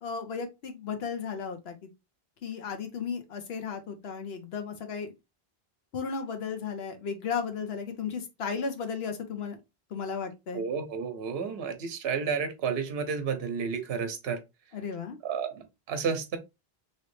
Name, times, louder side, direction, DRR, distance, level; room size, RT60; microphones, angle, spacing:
voice 1, 0.0-1.9 2.4-5.1 5.9-9.6 9.9-10.6 14.7-15.2, left 6 dB, 80° left, 1.0 m, -35 dB
voice 2, 10.5-14.4 15.2-16.4, right 6 dB, 80° right, 0.9 m, -31 dB
3.0 x 2.9 x 3.1 m
omnidirectional pair, 1.0 m